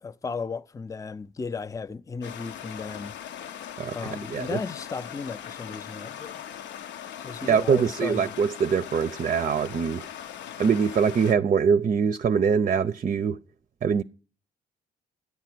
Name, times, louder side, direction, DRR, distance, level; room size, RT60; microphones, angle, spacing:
voice 1, 0.0-3.1 3.9-6.4 7.2-8.3, left 4 dB, 15° left, 0.5 m, -35 dB
Stream, 2.2-11.3, left 9 dB, 80° left, 0.7 m, -40 dB
voice 2, 7.4-10.1 10.6-13.4 13.8-14.0, right 6 dB, 45° right, 0.5 m, -23 dB
10.5 x 8.2 x 6.0 m
supercardioid pair, 65°, 18 cm